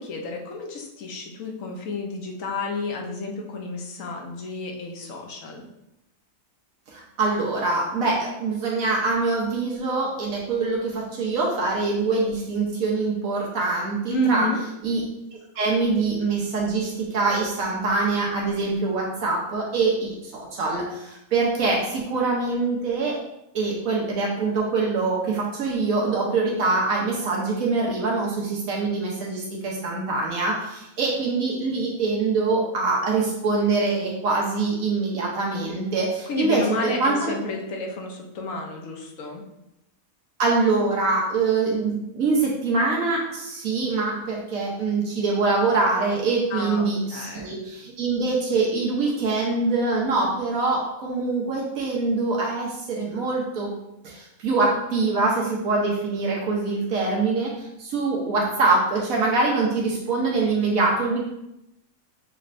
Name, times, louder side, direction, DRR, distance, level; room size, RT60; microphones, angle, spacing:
voice 1, 0.0-5.6 14.1-14.6 36.3-39.4 46.5-47.6, left 1 dB, 70° left, 1 dB, 1.2 m, -30 dB
voice 2, 6.9-14.5 14.8-15.0 15.5-23.2 23.5-37.3 40.4-53.7 54.0-61.3, right 3 dB, 80° right, -3 dB, 1.3 m, -24 dB
6.3 x 3.1 x 2.5 m, 0.86 s
omnidirectional pair, 1.4 m